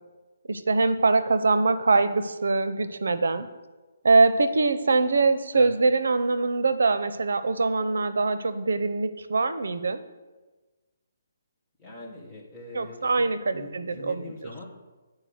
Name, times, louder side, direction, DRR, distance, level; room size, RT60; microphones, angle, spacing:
voice 1, 0.5-3.5 4.0-10.0 12.7-14.2, right 3 dB, 85° right, 13 dB, 0.7 m, -23 dB
voice 2, 11.8-13.2 13.5-14.7, left 2 dB, 5° left, -5 dB, 1.4 m, -42 dB
9.7 x 4.8 x 7.8 m, 1.2 s
hypercardioid pair, 175°, 0 cm